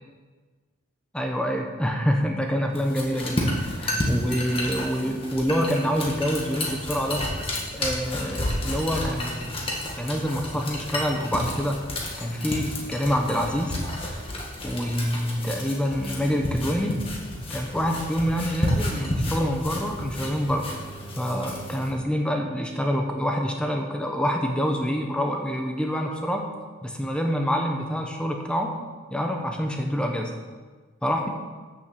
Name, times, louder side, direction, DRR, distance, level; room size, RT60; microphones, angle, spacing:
voice 1, 1.1-7.3 7.7-9.5 10.0-11.9 12.2-13.8 14.6-17.0 17.5-20.7 21.2-26.5 26.8-28.8 29.1-30.3 31.0-31.3, equal, 5° left, 2 dB, 0.8 m, -26 dB
sound 1, 2.7-21.9, left 1 dB, 25° left, 1.6 m, -31 dB
8.6 x 6.8 x 6.8 m, 1.4 s
head